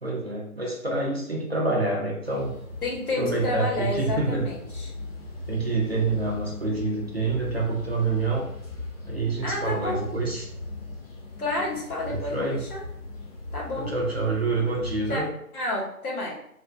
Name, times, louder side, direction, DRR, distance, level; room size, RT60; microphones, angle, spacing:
voice 1, 0.0-2.5 3.2-4.5 5.5-8.5 9.1-10.5 12.1-12.7 13.8-15.3, right 3 dB, 45° right, -2 dB, 0.5 m, -27 dB
sound 1, 2.2-15.3, left 2 dB, 40° left, 1.0 m, -39 dB
voice 2, 2.8-5.0 9.4-10.0 11.4-12.8 13.5-13.9 15.1-15.2 15.5-16.3, left 2 dB, 75° left, -2 dB, 1.1 m, -30 dB
2.9 x 2.4 x 2.3 m, 0.72 s
figure-of-eight pair, 165°, 45 cm